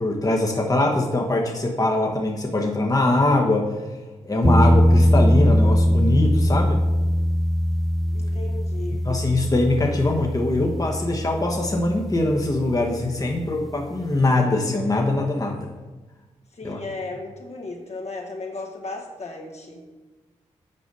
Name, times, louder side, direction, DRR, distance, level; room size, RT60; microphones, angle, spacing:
voice 1, 0.0-3.7 4.2-6.8 8.9-15.6 16.6-16.8, left 2 dB, 30° left, 0 dB, 1.2 m, -22 dB
sound 1, 4.4-13.4, equal, ahead, 0.4 m, -21 dB
voice 2, 8.1-9.1 9.8-9.9 16.5-19.8, left 3 dB, 60° left, 0 dB, 1.5 m, -35 dB
7.7 x 4.9 x 5.4 m, 1.2 s
supercardioid pair, 45°, 13 cm